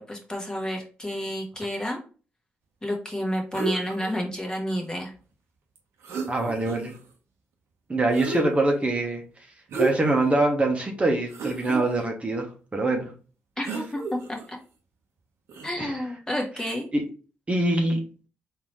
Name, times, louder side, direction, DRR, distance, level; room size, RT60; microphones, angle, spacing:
voice 1, 0.0-2.0 2.8-5.1 13.6-14.6 15.6-16.9, equal, 15° left, 1 dB, 1.2 m, -30 dB
sound 1, 3.5-4.1 5.8-5.9 6.0-7.0 8.1-8.8 9.7-10.2 10.7-10.8 11.3-11.8 13.6-14.5 15.5-15.7, right 2 dB, 80° right, 1.1 m, -31 dB
voice 2, 6.3-6.9 7.9-9.2 9.8-12.5 12.7-13.1 15.8-16.0 16.9-17.0 17.5-18.0, right 2 dB, 30° right, 1 dB, 1.1 m, -24 dB
3.9 x 2.9 x 3.1 m, 0.37 s
supercardioid pair, 65°, 4 cm